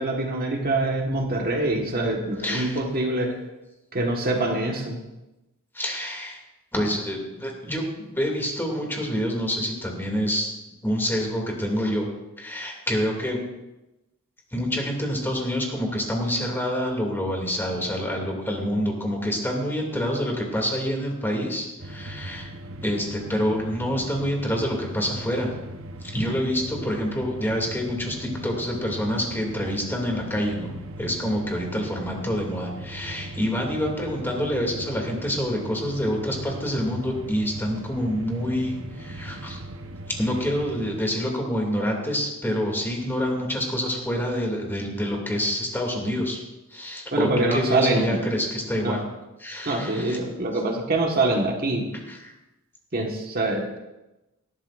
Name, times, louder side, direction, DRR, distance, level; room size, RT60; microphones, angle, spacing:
voice 1, 0.0-3.3 3.9-5.0 47.1-48.2 48.8-49.0 49.6-51.8 52.9-53.8, right 2 dB, 45° right, 1 dB, 1.6 m, -24 dB
voice 2, 2.4-2.8 5.7-6.4 6.7-12.1 12.4-13.4 14.5-22.5 22.8-25.5 26.0-30.7 31.0-39.6 40.2-46.4 46.7-49.0 49.4-50.2 52.1-52.3, equal, 10° left, 0 dB, 2.6 m, -27 dB
sound 1, 21.8-41.0, right 1 dB, 65° right, 1.0 m, -39 dB
19.5 x 13.0 x 2.6 m, 1.0 s
head